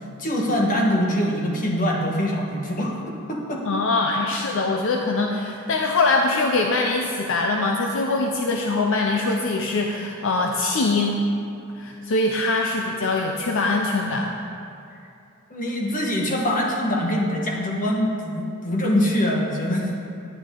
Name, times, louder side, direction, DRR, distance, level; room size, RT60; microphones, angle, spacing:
voice 1, 0.2-3.0 3.3-3.6 15.5-19.9, equal, 40° left, -2 dB, 1.4 m, -23 dB
voice 2, 3.6-11.3 11.8-14.3, left 3 dB, 60° left, 1 dB, 0.6 m, -23 dB
10.5 x 9.2 x 3.8 m, 2.6 s
head